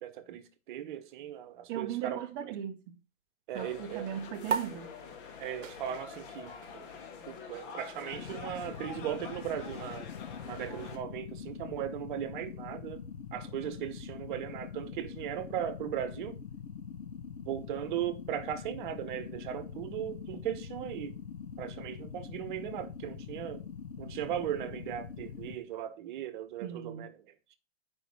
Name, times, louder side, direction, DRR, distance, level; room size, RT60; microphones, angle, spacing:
voice 1, 0.0-2.2 3.5-4.1 5.4-6.9 7.3-10.1 10.4-13.0 13.3-16.4 17.5-21.2 21.6-23.6 24.0-27.1, right 11 dB, 40° right, 1.0 m, -37 dB
voice 2, 1.7-3.0 3.5-4.9 26.6-27.1, right 10 dB, 25° right, 0.6 m, -38 dB
sound 1, 3.5-11.0, left 5 dB, 40° left, 1.9 m, -46 dB
sound 2, 4.5-11.3, right 7 dB, 80° right, 0.9 m, -41 dB
sound 3, 8.1-25.6, left 6 dB, 75° left, 1.3 m, -44 dB
9.0 x 5.3 x 4.5 m
hypercardioid pair, 135°, 38 cm